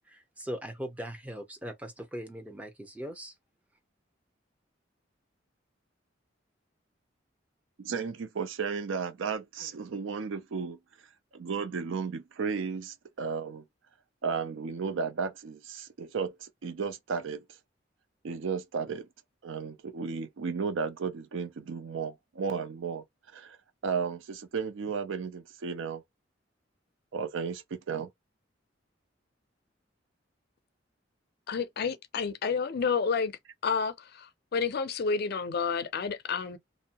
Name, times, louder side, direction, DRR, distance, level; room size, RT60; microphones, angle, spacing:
voice 1, 0.4-3.3, equal, 10° right, 0.6 m, -39 dB
voice 2, 7.8-10.8 11.3-13.6 14.2-17.6 18.2-19.1 19.4-23.0 23.3-23.6 23.8-26.0 27.1-28.1, right 5 dB, 85° right, 0.5 m, -34 dB
voice 3, 31.5-33.3 33.6-36.6, left 5 dB, 55° left, 0.4 m, -30 dB
2.6 x 2.0 x 2.8 m
head